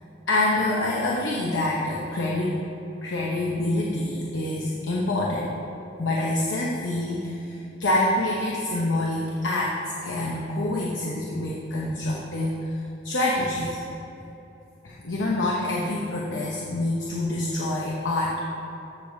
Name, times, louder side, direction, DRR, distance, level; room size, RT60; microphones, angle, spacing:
voice 1, 0.3-2.6 3.0-5.5 6.0-9.8 10.0-13.8 14.8-18.4, left 1 dB, 90° left, -3 dB, 0.8 m, -26 dB
14.0 x 6.8 x 2.7 m, 2.9 s
head